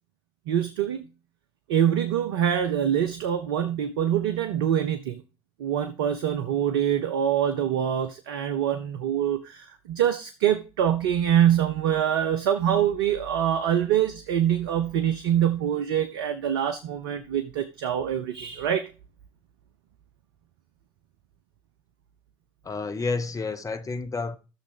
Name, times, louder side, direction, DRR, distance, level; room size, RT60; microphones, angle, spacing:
voice 1, 0.5-1.1 1.7-5.2 5.6-18.9, right 10 dB, 70° right, 0.7 m, -25 dB
voice 2, 22.6-24.4, left 4 dB, 25° left, 0.9 m, -30 dB
14.0 x 6.4 x 3.4 m
figure-of-eight pair, 55°, 13 cm